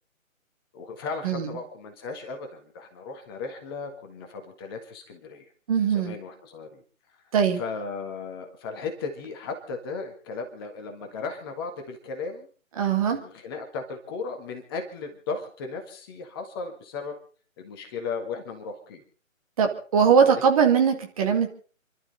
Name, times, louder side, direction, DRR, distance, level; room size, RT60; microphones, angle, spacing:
voice 1, 0.7-5.5 5.9-6.8 7.6-12.5 13.1-17.2 17.6-19.0 20.2-20.3, left 4 dB, 15° left, 3 dB, 1.6 m, -36 dB
voice 2, 1.2-1.6 5.7-6.2 7.3-7.6 12.8-13.2 19.6-21.5, right 7 dB, 25° right, 3 dB, 2.2 m, -21 dB
29.0 x 12.0 x 4.1 m, 0.40 s
figure-of-eight pair, 145°, 40 cm